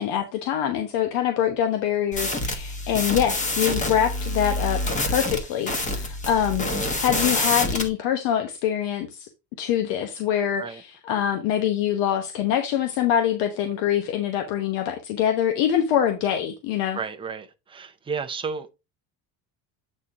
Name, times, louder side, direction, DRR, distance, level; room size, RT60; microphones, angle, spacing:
voice 1, 0.0-9.3 9.6-17.0, left 10 dB, 85° left, 1.1 m, -24 dB
sound 1, 2.1-7.9, left 2 dB, 20° left, 1.0 m, -27 dB
voice 2, 16.9-18.7, right 5 dB, 15° right, 0.5 m, -32 dB
8.3 x 4.3 x 3.7 m
cardioid pair, 175°, 41 cm